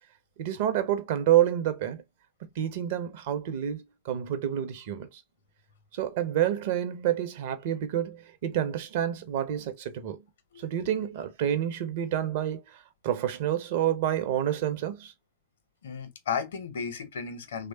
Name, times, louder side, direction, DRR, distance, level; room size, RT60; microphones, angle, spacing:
voice 1, 0.4-2.0 2.6-5.2 5.9-10.2 10.6-15.1, right 11 dB, 50° right, 0.5 m, -28 dB
voice 2, 15.8-17.7, left 6 dB, 60° left, 0.7 m, -34 dB
3.1 x 2.1 x 2.7 m
figure-of-eight pair, 90°, 0 cm